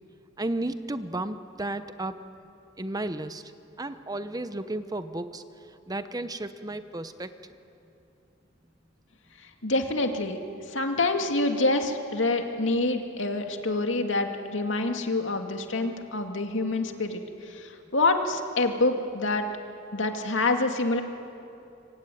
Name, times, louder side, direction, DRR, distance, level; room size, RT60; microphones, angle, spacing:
voice 1, 0.4-2.2 2.8-3.4 3.8-5.4 5.9-7.3, right 2 dB, 20° right, 11 dB, 0.9 m, -33 dB
voice 2, 9.6-10.4 10.7-19.5 19.9-21.0, left 2 dB, 75° left, 5 dB, 2.4 m, -26 dB
26.0 x 24.5 x 9.3 m, 2.7 s
head